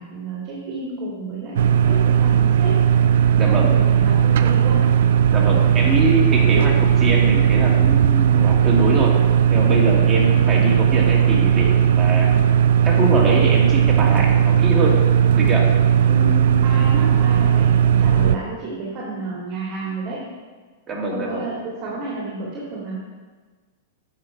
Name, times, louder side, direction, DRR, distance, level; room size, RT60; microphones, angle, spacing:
voice 1, 0.0-2.8 3.5-4.9 5.5-5.7 6.3-6.6 10.0-10.2 16.1-20.2 21.1-23.0, right 2 dB, 40° right, -5 dB, 2.3 m, -31 dB
sound 1, 1.6-18.4, right 9 dB, 65° right, 0.4 m, -16 dB
voice 2, 3.3-3.7 5.3-9.1 9.5-12.3 12.8-14.9 15.3-15.7 20.9-21.4, right 1 dB, 20° right, -3 dB, 2.3 m, -23 dB
8.7 x 5.5 x 4.7 m, 1.4 s
hypercardioid pair, 105°, 0 cm